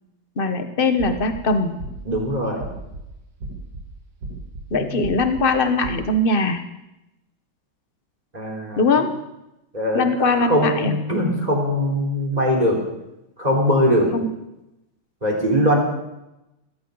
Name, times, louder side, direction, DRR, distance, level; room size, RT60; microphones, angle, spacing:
voice 1, 0.4-1.7 4.7-6.6 8.8-9.1 9.9-10.9 14.1-14.3, left 3 dB, 30° left, 7 dB, 1.3 m, -21 dB
sound 1, 1.0-1.4 1.8-2.2 2.6-3.0 3.4-3.8 4.2-4.6 5.0-5.4 5.8-6.0, right 2 dB, 50° right, 2.4 m, -34 dB
voice 2, 2.1-2.6 4.7-5.1 8.3-8.8 9.7-12.8 13.4-14.1 15.2-15.8, equal, 20° right, 0 dB, 4.1 m, -21 dB
20.0 x 16.5 x 4.1 m, 0.91 s
omnidirectional pair, 2.2 m